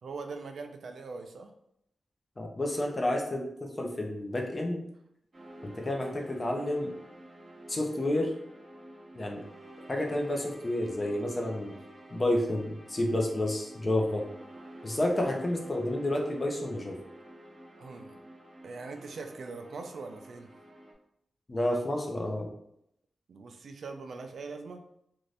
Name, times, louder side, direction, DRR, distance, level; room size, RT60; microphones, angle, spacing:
voice 1, 0.0-1.5 17.8-18.2 18.6-20.5 23.3-24.8, right 4 dB, 75° right, 5 dB, 0.4 m, -42 dB
voice 2, 2.4-4.8 5.6-6.9 7.7-8.3 9.1-9.4 9.9-11.7 12.1-14.2 14.8-17.0 21.5-22.5, left 1 dB, 25° left, 1 dB, 0.5 m, -30 dB
sound 1, 5.3-20.9, right 1 dB, 35° right, 0.6 m, -50 dB
2.6 x 2.5 x 3.2 m, 0.75 s
wide cardioid pair, 135°, 0 cm